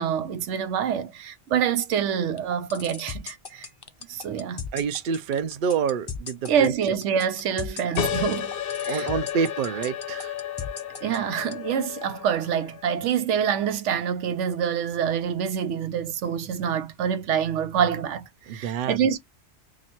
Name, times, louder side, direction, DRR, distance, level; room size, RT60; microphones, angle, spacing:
voice 1, 0.0-3.7 4.1-4.7 6.5-8.5 8.8-9.1 11.0-19.2, right 8 dB, 85° right, 1.0 m, -26 dB
sound 1, 2.4-11.5, left 6 dB, 35° left, 0.4 m, -36 dB
voice 2, 4.7-6.7 8.9-10.4 18.5-19.1, right 7 dB, 55° right, 0.7 m, -27 dB
sound 2, 8.0-13.2, left 9 dB, 60° left, 0.7 m, -32 dB
3.0 x 2.5 x 4.1 m
omnidirectional pair, 1.2 m